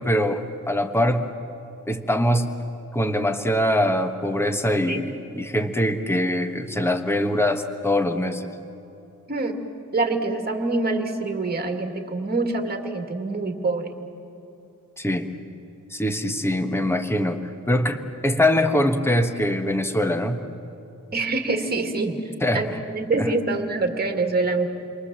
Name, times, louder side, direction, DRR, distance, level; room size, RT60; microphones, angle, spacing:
voice 1, 0.0-1.3 1.9-2.5 2.9-8.5 15.0-15.3 15.9-20.4 22.4-22.6 23.1-23.3, left 1 dB, 10° left, 7 dB, 1.2 m, -23 dB
voice 2, 9.9-13.9 21.1-22.2 22.5-24.7, right 3 dB, 30° right, 4 dB, 2.2 m, -25 dB
29.0 x 23.5 x 7.6 m, 2.9 s
wide cardioid pair, 150°, 32 cm